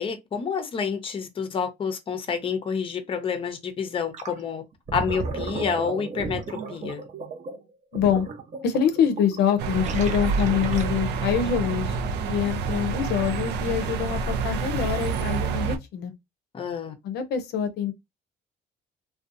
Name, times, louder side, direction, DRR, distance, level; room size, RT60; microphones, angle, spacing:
voice 1, 0.0-4.6 4.9-6.4 6.7-7.0 16.5-16.9, left 6 dB, 30° left, 0.6 m, -28 dB
Gurgling, 4.1-4.4 4.7-11.2, right 4 dB, 45° right, 0.7 m, -35 dB
voice 2, 7.9-8.3 8.6-12.0 12.3-16.1 17.0-17.9, left 8 dB, 75° left, 0.6 m, -25 dB
sound 1, 9.6-15.8, right 5 dB, 80° right, 0.5 m, -28 dB
2.5 x 2.2 x 2.5 m
cardioid pair, 110°, 17 cm